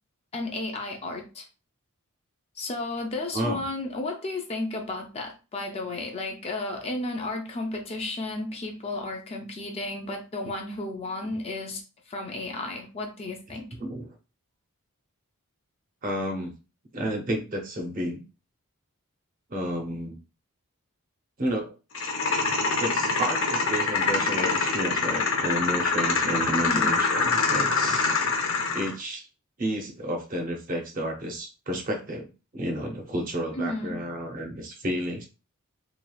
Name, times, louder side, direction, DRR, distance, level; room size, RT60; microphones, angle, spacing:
voice 1, 0.3-1.5 2.6-13.6 26.5-26.9 33.6-34.0, left 2 dB, 30° left, 2 dB, 0.4 m, -33 dB
voice 2, 13.8-14.1 16.0-16.5 16.9-18.2 19.5-20.2 21.4-21.7 22.8-28.1 28.7-29.3 29.6-32.3 32.5-35.3, equal, 40° right, 2 dB, 0.6 m, -31 dB
sound 1, 21.9-28.9, left 4 dB, 65° left, 0.7 m, -25 dB
3.1 x 2.3 x 2.3 m, 0.32 s
head